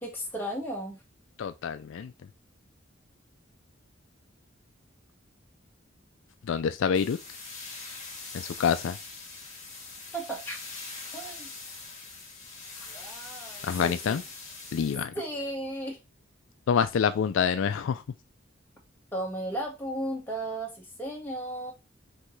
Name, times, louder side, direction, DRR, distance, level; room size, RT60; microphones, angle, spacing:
voice 1, 0.0-1.0 10.1-10.6 11.1-11.5 13.8-14.2 15.1-16.0 19.1-21.7, right 1 dB, 10° left, 1.4 m, -34 dB
voice 2, 1.4-2.1 6.5-7.2 8.3-9.0 13.6-14.2 14.7-15.1 16.7-18.0, left 7 dB, 75° left, 0.3 m, -26 dB
sound 1, 6.9-15.0, left 3 dB, 35° left, 1.7 m, -42 dB
sound 2, 12.9-14.4, right 1 dB, 15° right, 1.5 m, -50 dB
5.6 x 3.0 x 3.1 m
head